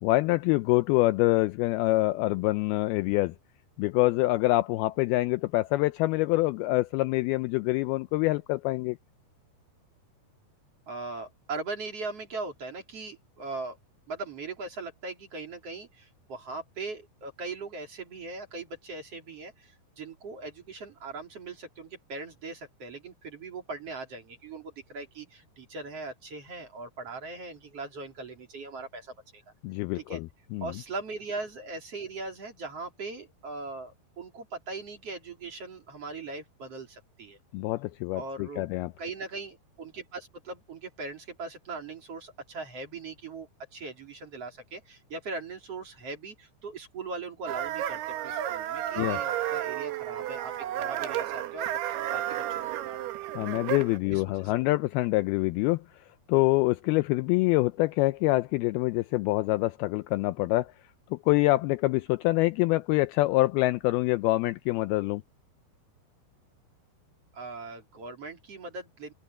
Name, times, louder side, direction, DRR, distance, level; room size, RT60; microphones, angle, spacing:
voice 1, 0.0-3.3 3.8-9.0 29.6-30.3 30.5-30.7 37.5-38.9 49.0-49.2 53.4-55.8 56.3-60.7 61.1-65.2, left 20 dB, 85° left, 2.3 m, -25 dB
voice 2, 10.9-13.8 14.1-29.4 29.9-30.2 30.6-37.4 38.1-38.7 39.0-51.7 52.1-53.0 54.1-54.5 67.3-69.1, right 3 dB, 40° right, 3.9 m, -40 dB
sound 1, 47.5-54.0, right 12 dB, 75° right, 3.2 m, -32 dB
open air
omnidirectional pair, 4.8 m